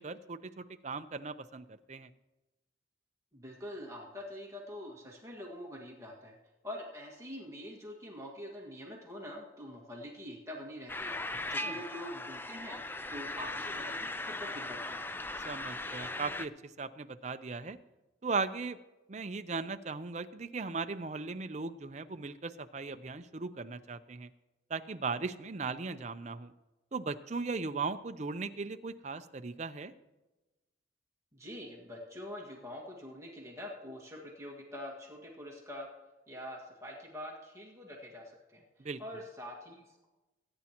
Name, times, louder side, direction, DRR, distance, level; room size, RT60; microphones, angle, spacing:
voice 1, 0.0-2.1 11.6-11.8 15.4-16.5 16.8-17.8 18.2-18.8 19.1-24.3 24.7-26.5 26.9-29.9 38.8-39.0, right 4 dB, 40° right, 10 dB, 0.5 m, -38 dB
voice 2, 3.3-6.4 6.6-11.2 11.5-12.8 13.1-15.1 31.3-35.9 36.3-38.6 39.0-40.1, left 1 dB, 15° right, -2 dB, 1.8 m, -45 dB
sound 1, 10.9-16.5, left 2 dB, 10° left, 0.3 m, -38 dB
21.0 x 9.6 x 3.0 m, 1.1 s
head